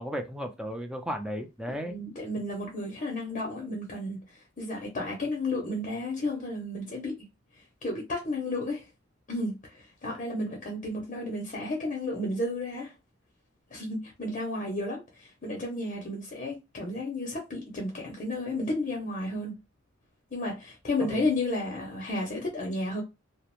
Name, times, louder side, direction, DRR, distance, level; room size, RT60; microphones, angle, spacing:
voice 1, 0.0-2.0 21.0-21.2, equal, 5° right, 0.4 m, -35 dB
voice 2, 1.8-7.3 7.8-8.9 9.3-12.9 13.7-19.6 20.3-23.0, left 2 dB, 40° left, 0.6 m, -32 dB
2.4 x 2.0 x 2.9 m
head